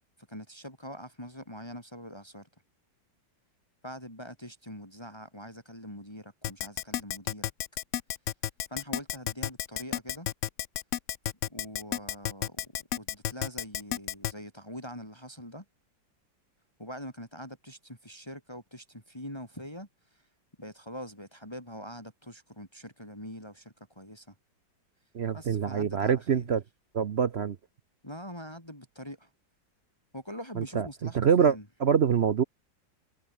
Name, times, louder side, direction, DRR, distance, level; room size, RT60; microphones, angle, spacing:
voice 1, 0.3-2.5 3.8-7.5 8.7-10.3 11.5-15.6 16.8-20.2 20.6-24.3 25.3-26.5 28.0-29.3 30.1-31.6, equal, 10° left, 7.4 m, -43 dB
Keyboard (musical), 6.4-14.3, left 12 dB, 85° left, 0.6 m, -31 dB
voice 2, 25.1-26.6 26.9-27.6 30.6-30.9 31.1-31.6 31.8-32.4, right 7 dB, 65° right, 0.6 m, -25 dB
omnidirectional pair, 2.1 m